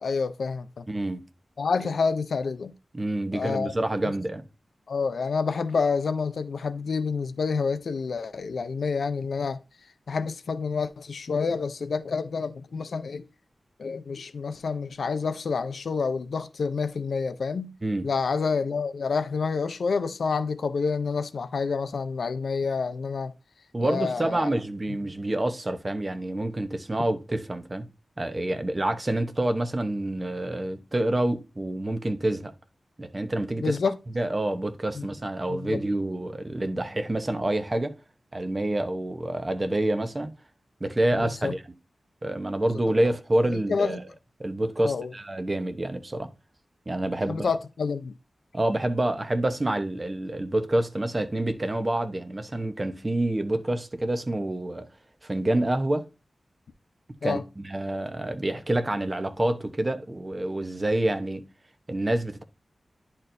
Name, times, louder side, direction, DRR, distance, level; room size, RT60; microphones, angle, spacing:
voice 1, 0.0-0.9 1.6-2.7 3.3-3.7 4.9-9.6 10.1-13.3 13.8-17.7 18.0-23.3 23.8-24.5 33.6-34.0 35.0-35.1 35.5-35.8 41.2-41.5 43.5-44.0 44.8-45.1 47.3-48.2 57.2-57.4, left 5 dB, 85° left, 0.5 m, -28 dB
voice 2, 0.9-1.2 2.9-4.4 17.8-18.1 23.7-27.9 28.2-32.5 33.0-33.8 34.1-37.9 38.3-40.3 40.8-41.6 42.2-44.0 44.4-46.3 46.9-47.6 48.5-54.9 55.2-56.0 57.2-61.4 61.9-62.4, right 1 dB, 25° right, 0.8 m, -27 dB
10.5 x 4.3 x 2.6 m
wide cardioid pair, 105°, 0 cm